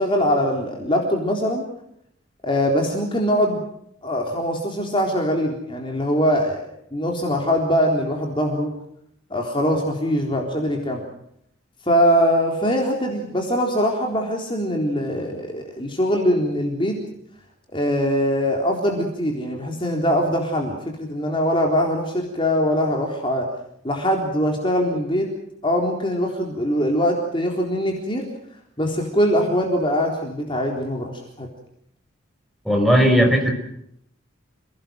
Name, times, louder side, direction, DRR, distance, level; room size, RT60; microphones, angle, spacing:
voice 1, 0.0-1.7 2.4-3.6 4.0-8.7 9.3-11.1 11.8-17.0 17.7-23.5 23.8-25.3 25.6-28.3 28.8-31.5, equal, 25° left, 1 dB, 3.9 m, -22 dB
voice 2, 32.6-33.5, equal, ahead, 2 dB, 5.7 m, -16 dB
29.0 x 18.5 x 7.8 m, 0.74 s
head